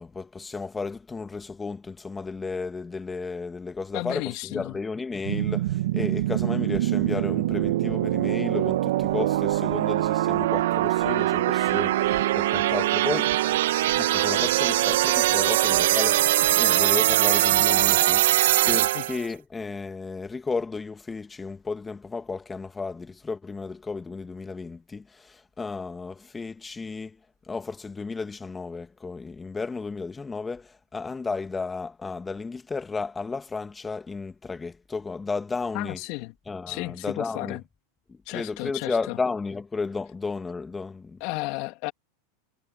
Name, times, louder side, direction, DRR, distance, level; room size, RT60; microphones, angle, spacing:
voice 1, 0.0-13.4 13.9-27.2 27.5-36.0 36.5-37.6 38.1-41.2, left 4 dB, 15° left, 2.3 m, -33 dB
voice 2, 3.9-4.8 18.9-19.0 35.7-36.3 36.7-37.6 38.3-39.2 41.2-41.9, left 24 dB, 55° left, 3.0 m, -33 dB
sound 1, 5.2-19.3, right 14 dB, 75° right, 2.1 m, -22 dB
hypercardioid pair, 110°, 0 cm